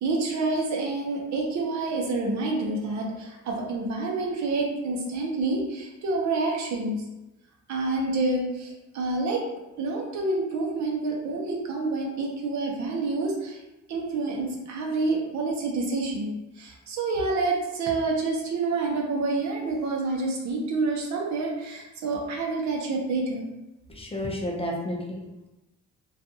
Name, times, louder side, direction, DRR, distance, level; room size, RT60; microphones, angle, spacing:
voice 1, 0.0-7.0 7.7-9.4 9.8-13.6 13.9-23.5, right 3 dB, 70° right, 0 dB, 0.7 m, -28 dB
voice 2, 23.9-25.5, left 1 dB, 20° left, -1 dB, 0.5 m, -32 dB
2.5 x 2.3 x 2.6 m, 1.0 s
cardioid pair, 90°, 30 cm